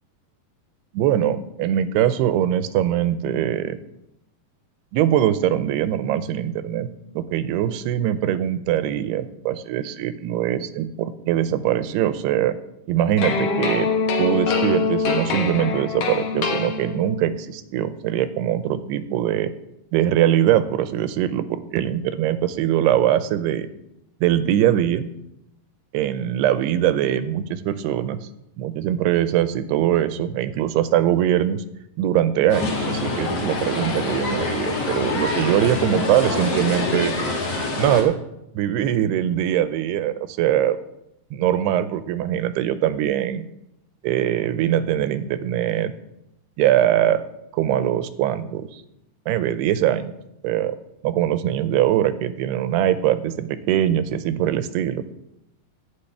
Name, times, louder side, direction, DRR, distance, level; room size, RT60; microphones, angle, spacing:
voice 1, 0.9-3.8 4.9-6.9 7.2-12.6 12.9-13.9 14.2-19.5 19.9-23.7 24.2-25.0 25.9-28.3 28.6-31.6 32.0-37.1 37.8-38.2 38.6-40.8 41.4-43.5 44.0-45.9 46.6-47.2 47.5-48.7 49.3-50.1 50.4-50.8 51.0-55.0, right 11 dB, 85° right, 13 dB, 2.7 m, -22 dB
sound 1, 13.2-17.3, left 4 dB, 80° left, 1.3 m, -24 dB
sound 2, 32.5-38.0, left 3 dB, 45° left, 2.9 m, -25 dB
8.6 x 8.1 x 8.3 m, 0.83 s
omnidirectional pair, 4.6 m